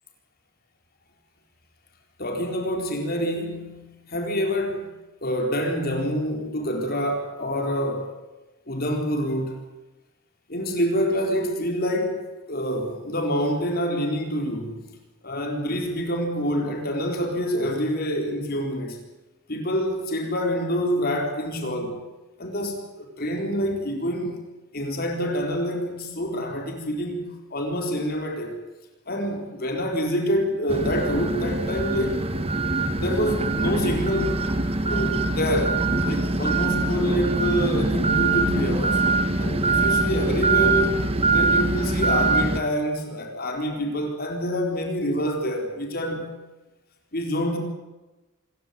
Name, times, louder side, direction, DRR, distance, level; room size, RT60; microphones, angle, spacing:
voice 1, 2.2-4.9 5.2-8.1 8.7-9.6 10.5-12.2 12.5-14.9 15.2-19.0 19.5-22.0 22.4-24.4 24.7-28.5 29.1-32.2 32.9-34.4 34.8-39.0 39.4-41.0 41.3-46.4 47.1-47.6, equal, 45° left, 3 dB, 4.1 m, -26 dB
sound 1, 30.7-42.6, right 3 dB, 30° right, 1.4 m, -23 dB
26.0 x 15.5 x 9.4 m, 1.1 s
head